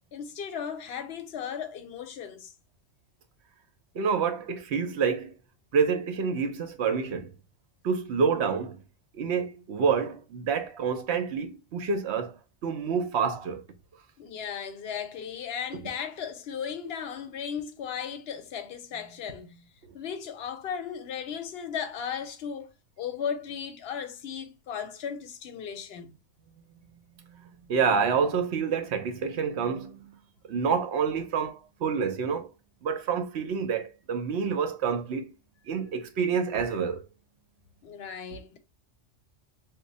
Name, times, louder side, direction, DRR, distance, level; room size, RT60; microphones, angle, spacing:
voice 1, 0.1-2.5 14.2-19.7 19.9-22.7 23.0-26.1 37.8-38.6, left 7 dB, 65° left, 0.8 m, -36 dB
voice 2, 3.9-5.3 5.7-7.3 7.8-8.8 9.1-13.6 27.3-30.2 30.4-32.5 32.8-35.3 35.7-37.0, right 6 dB, 70° right, 0.9 m, -28 dB
2.9 x 2.1 x 3.9 m
omnidirectional pair, 1.2 m